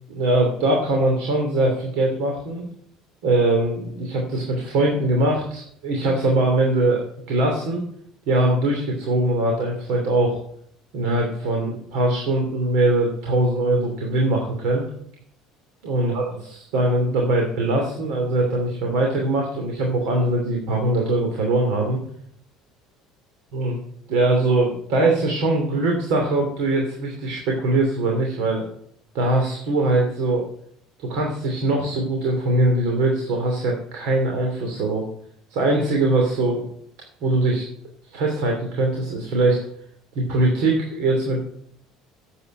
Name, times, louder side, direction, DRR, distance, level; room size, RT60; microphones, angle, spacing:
voice 1, 0.2-2.6 3.2-7.8 8.3-10.4 10.9-14.9 15.8-16.2 16.7-22.0 23.5-23.8 24.1-28.6 29.1-30.4 31.0-35.0 35.5-36.7 37.2-37.6 38.1-39.6 40.1-41.4, right 2 dB, 75° right, 1 dB, 2.9 m, -21 dB
8.9 x 8.0 x 9.0 m, 0.66 s
supercardioid pair, 115°, 0 cm